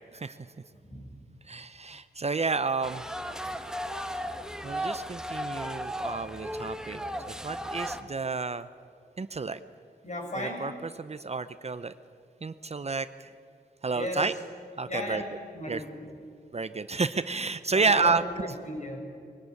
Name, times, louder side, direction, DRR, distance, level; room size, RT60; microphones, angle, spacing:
voice 1, 0.7-1.2 10.0-10.7 13.9-14.3 14.9-16.2 17.7-19.0, left 1 dB, 45° left, 2 dB, 6.3 m, -36 dB
voice 2, 1.5-3.0 4.6-7.0 7.3-8.7 9.2-9.6 10.4-10.7 11.0-11.9 12.4-13.3 13.8-14.3 14.8-15.2 15.7-15.8 16.5-18.5, right 4 dB, 40° right, 13 dB, 0.7 m, -30 dB
sound 1, 2.8-8.0, equal, 5° right, 1.4 m, -35 dB
22.5 x 17.5 x 9.5 m, 2.3 s
wide cardioid pair, 80°, 17 cm